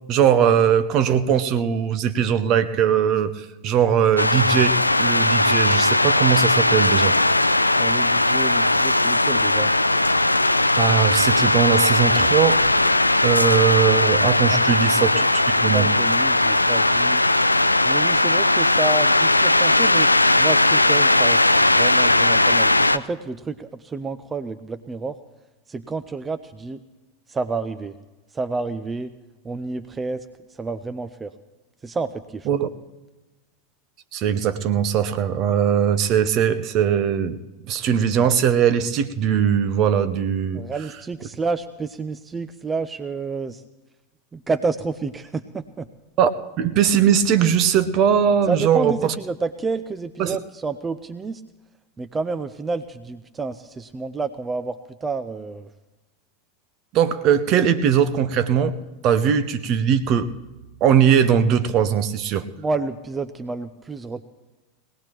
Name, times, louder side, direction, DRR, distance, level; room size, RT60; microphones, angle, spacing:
voice 1, 0.1-7.2 10.8-12.6 13.2-15.9 32.5-32.7 34.1-37.4 37.7-40.6 46.2-46.3 46.6-49.1 50.2-50.4 56.9-58.8 59.0-60.3 60.8-62.5, right 8 dB, 40° right, 13 dB, 0.8 m, -20 dB
sound 1, 4.2-23.0, left 2 dB, 85° left, 0.4 m, -18 dB
voice 2, 7.8-9.7 14.5-14.7 15.7-17.2 17.9-20.1 20.4-25.2 25.7-26.8 27.3-27.9 28.3-29.1 29.4-30.3 30.6-31.3 31.8-32.5 40.5-43.6 44.3-45.9 48.5-51.4 52.0-55.7 62.6-64.2, right 4 dB, 15° right, 11 dB, 0.5 m, -29 dB
21.0 x 17.5 x 3.0 m, 1.1 s
figure-of-eight pair, 85°, 0 cm